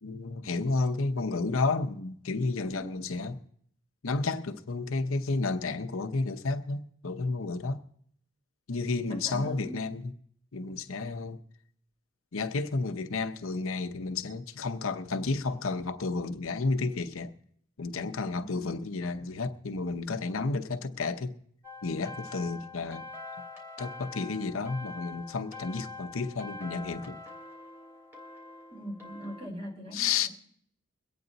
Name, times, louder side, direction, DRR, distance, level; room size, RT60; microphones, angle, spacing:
voice 1, 0.0-3.4 4.0-7.8 8.7-10.1 10.5-11.4 12.3-17.3 17.8-21.3 21.8-23.0 23.8-27.2 29.9-30.3, left 3 dB, 80° left, 0.8 m, -31 dB
voice 2, 9.1-9.8 18.4-18.7 28.7-30.3, equal, 25° right, 3.1 m, -41 dB
sound 1, 21.6-29.5, left 3 dB, 10° right, 2.9 m, -44 dB
23.0 x 8.9 x 4.0 m
head